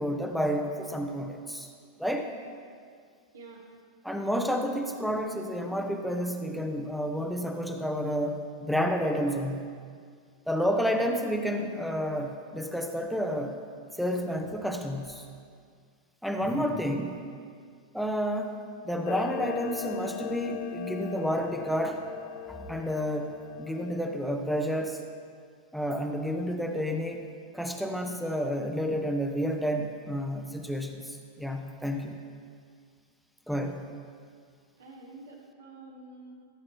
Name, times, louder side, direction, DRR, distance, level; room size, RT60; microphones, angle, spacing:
voice 1, 0.0-1.7 2.0-2.3 4.0-9.6 10.5-13.6 14.0-15.3 16.2-17.2 17.9-22.0 22.5-23.3 23.6-25.0 25.7-27.3 27.5-32.2 33.5-33.8, equal, ahead, 3 dB, 0.9 m, -30 dB
voice 2, 3.3-3.6 34.8-36.3, right 3 dB, 65° right, -1 dB, 1.7 m, -48 dB
Clock, 19.1-24.0, left 10 dB, 45° left, 0.5 m, -39 dB
14.5 x 7.6 x 4.6 m, 2.1 s
figure-of-eight pair, 90°, 0 cm